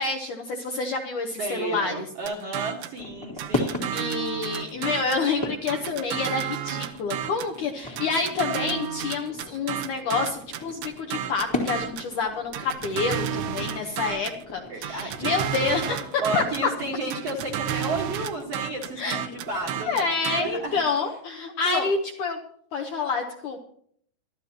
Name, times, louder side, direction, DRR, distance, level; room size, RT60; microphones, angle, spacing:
voice 1, 0.0-2.1 3.9-16.4 19.0-22.4 22.7-23.6, left 4 dB, 70° left, 1 dB, 1.9 m, -28 dB
voice 2, 1.3-3.9 13.8-14.0 14.7-15.3 16.0-20.0 20.4-20.8 21.6-21.9, right 2 dB, 55° right, -1 dB, 1.9 m, -32 dB
sound 1, 2.3-3.0 3.4-5.3 5.7-7.6 8.0-12.1 12.5-14.4 14.8-16.7 17.1-20.4, right 10 dB, 85° right, 3.0 m, -32 dB
sound 2, 3.0-20.8, left 2 dB, 15° left, 0.9 m, -38 dB
22.0 x 13.0 x 2.9 m, 0.62 s
omnidirectional pair, 4.8 m